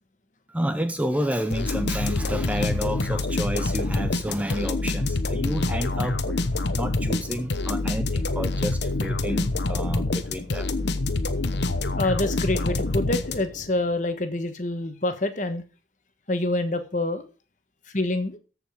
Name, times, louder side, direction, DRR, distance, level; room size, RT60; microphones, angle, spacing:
voice 1, 0.5-10.7, equal, 10° right, 0.5 m, -30 dB
sound 1, 1.5-13.7, left 2 dB, 75° left, 0.9 m, -26 dB
voice 2, 12.0-15.6 16.3-17.3 17.9-18.4, left 2 dB, 45° left, 1.2 m, -26 dB
14.0 x 5.0 x 5.0 m
head